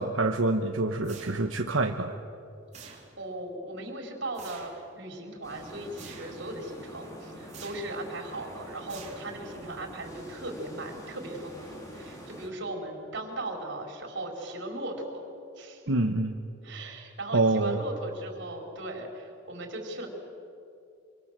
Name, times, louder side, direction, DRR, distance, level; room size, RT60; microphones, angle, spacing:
voice 1, 0.0-2.1 15.9-16.3 17.3-17.8, right 2 dB, 85° right, 4 dB, 1.2 m, -26 dB
sound 1, 1.0-1.7 2.7-3.4 4.3-4.8 6.0-6.5 7.5-8.0 8.9-9.6, right 6 dB, 35° right, 3.3 m, -48 dB
voice 2, 2.9-15.2 15.6-15.8 16.6-20.1, right 1 dB, 65° right, 2 dB, 4.7 m, -38 dB
sound 2, 5.4-12.5, equal, 15° left, 4.3 m, -45 dB
26.0 x 24.5 x 7.6 m, 2.6 s
head